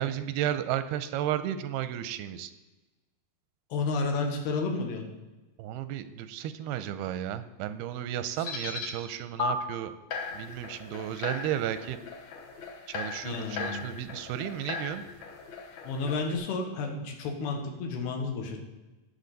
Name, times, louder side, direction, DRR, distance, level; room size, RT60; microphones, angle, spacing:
voice 1, 0.0-2.5 5.6-9.9 10.3-12.0 12.9-15.0, right 11 dB, 85° right, 12 dB, 2.5 m, -33 dB
voice 2, 3.7-5.0 13.2-13.9 15.8-18.6, left 3 dB, 85° left, 3 dB, 3.4 m, -31 dB
sound 1, 8.4-8.9 9.4-9.5 10.1-16.3, left 5 dB, 60° left, 2.1 m, -38 dB
18.0 x 6.3 x 4.0 m, 1.1 s
omnidirectional pair, 4.4 m